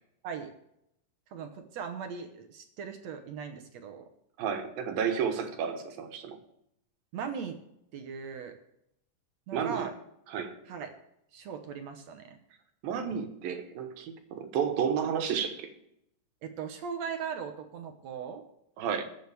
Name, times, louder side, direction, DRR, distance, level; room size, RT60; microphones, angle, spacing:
voice 1, 1.3-4.1 7.1-7.6 7.9-8.6 9.5-9.9 10.7-11.0 11.3-12.4 16.4-18.4, right 6 dB, 65° right, 6 dB, 1.8 m, -39 dB
voice 2, 4.4-6.4 9.5-9.9 10.3-10.6 12.8-15.7 18.8-19.0, right 7 dB, 85° right, 6 dB, 3.1 m, -31 dB
20.5 x 7.9 x 3.5 m, 0.78 s
omnidirectional pair, 4.0 m